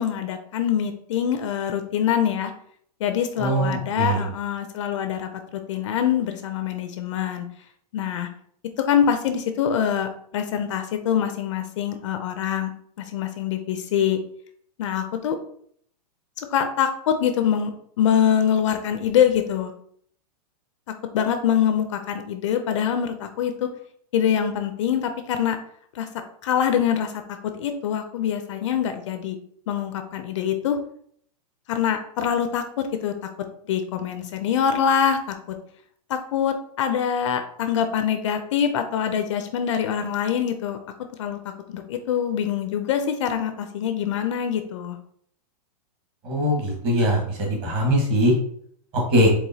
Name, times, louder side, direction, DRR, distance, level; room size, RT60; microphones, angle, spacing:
voice 1, 0.0-2.5 3.0-7.5 7.9-8.3 8.8-12.7 13.0-14.2 14.8-15.4 16.4-17.7 18.0-19.7 21.1-23.7 24.1-25.6 25.9-26.1 26.4-27.2 27.5-29.4 29.7-30.8 31.7-32.6 33.0-33.1 33.7-35.4 36.1-40.8 41.2-41.4 41.7-45.0, left 8 dB, 50° left, 7 dB, 0.5 m, -24 dB
voice 2, 3.4-4.2 46.2-48.3 49.1-49.3, equal, 25° right, 0 dB, 1.3 m, -21 dB
4.8 x 3.8 x 2.7 m, 0.64 s
supercardioid pair, 165°, 21 cm